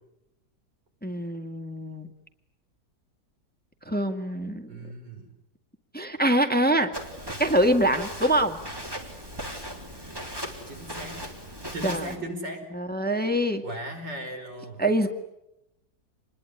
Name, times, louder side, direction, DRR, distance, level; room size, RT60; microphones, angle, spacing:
voice 1, 1.0-2.1 3.9-4.8 5.9-6.9 7.4-8.6 11.8-12.0 12.7-13.6 14.8-15.1, right 1 dB, 5° left, 6 dB, 1.8 m, -24 dB
voice 2, 4.7-5.3 10.7-11.2 11.7-12.6 13.6-14.8, right 1 dB, 90° right, 4 dB, 5.8 m, -37 dB
Walk footsteps, 6.9-12.2, equal, 15° right, 3.6 m, -38 dB
28.0 x 21.0 x 10.0 m, 0.86 s
omnidirectional pair, 1.9 m